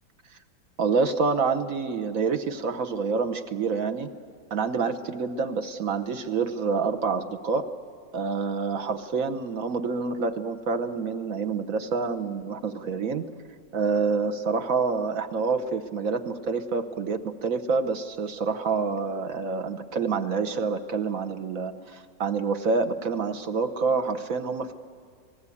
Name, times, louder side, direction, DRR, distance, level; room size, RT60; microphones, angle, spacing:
voice 1, 0.8-4.1 4.5-7.7 8.1-13.2 13.7-24.7, right 4 dB, 55° right, 9 dB, 1.2 m, -27 dB
27.5 x 19.0 x 8.5 m, 2.1 s
omnidirectional pair, 2.0 m